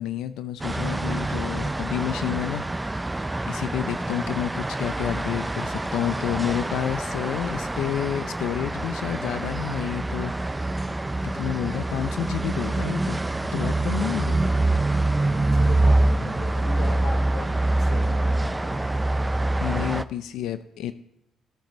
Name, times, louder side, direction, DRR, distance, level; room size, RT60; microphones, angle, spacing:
voice 1, 0.0-2.6 3.5-10.3 11.2-13.2 13.5-14.4 19.6-20.9, left 11 dB, 85° left, 12 dB, 0.4 m, -29 dB
sound 1, 0.6-20.0, right 2 dB, 15° right, 0.4 m, -25 dB
voice 2, 15.2-19.0, left 2 dB, 65° left, 0 dB, 3.5 m, -38 dB
17.5 x 8.8 x 3.1 m, 0.80 s
cardioid pair, 90°, 0 cm